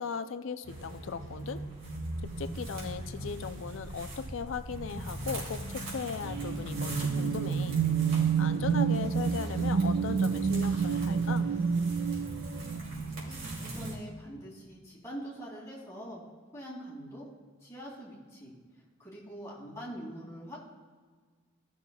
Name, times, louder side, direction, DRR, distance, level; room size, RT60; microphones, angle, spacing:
voice 1, 0.0-1.6 2.2-7.8 8.4-11.5, left 6 dB, 70° left, 10 dB, 0.4 m, -38 dB
sound 1, 0.6-13.9, right 1 dB, 80° right, 2.7 m, -38 dB
sound 2, 6.2-12.8, right 6 dB, 50° right, 0.3 m, -29 dB
voice 2, 13.3-16.2 16.5-17.3 17.6-18.5 19.0-20.6, equal, 15° left, -6 dB, 2.5 m, -44 dB
15.0 x 6.3 x 2.3 m, 1.5 s
head